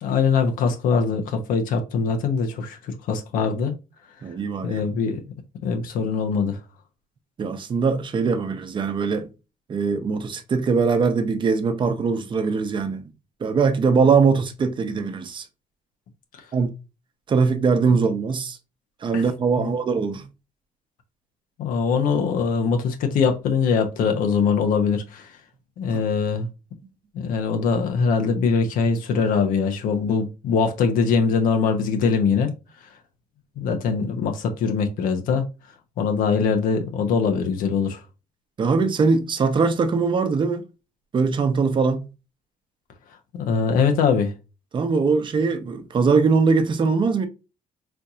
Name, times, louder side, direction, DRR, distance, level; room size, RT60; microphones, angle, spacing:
voice 1, 0.0-3.7 4.6-5.2 5.6-6.6 17.9-18.0 19.1-19.2 19.6-19.7 21.6-25.3 25.8-26.5 27.1-32.5 33.6-35.5 36.0-38.0 43.3-44.3, left 5 dB, 90° left, 0.8 m, -22 dB
voice 2, 4.2-4.9 7.4-9.3 9.7-13.0 13.4-15.4 16.5-16.7 17.3-18.6 19.0-20.3 25.9-26.0 38.6-40.6 41.1-42.1 44.7-47.3, right 5 dB, 35° right, 0.7 m, -21 dB
4.4 x 2.7 x 2.3 m
cardioid pair, 135°, 14 cm